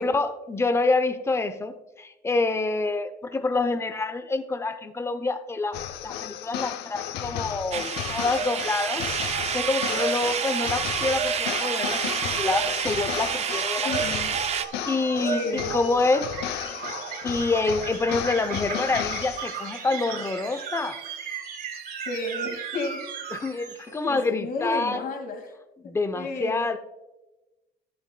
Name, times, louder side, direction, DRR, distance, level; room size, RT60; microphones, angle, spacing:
voice 1, 0.0-5.8 6.0-9.1 9.5-14.1 14.9-16.3 17.2-21.0 23.3-25.0 25.8-26.8, left 3 dB, 15° left, 9 dB, 0.7 m, -27 dB
sound 1, 5.7-19.8, left 11 dB, 80° left, 0.6 m, -34 dB
sound 2, 7.6-24.2, right 5 dB, 60° right, 1.5 m, -35 dB
sound 3, 7.7-14.6, right 8 dB, 40° right, 0.5 m, -29 dB
voice 2, 13.8-14.3 15.3-15.8 22.1-23.0 24.0-25.5 26.1-26.7, left 2 dB, 60° left, 4 dB, 2.2 m, -32 dB
12.5 x 8.6 x 2.3 m, 1.0 s
cardioid pair, 110°, 17 cm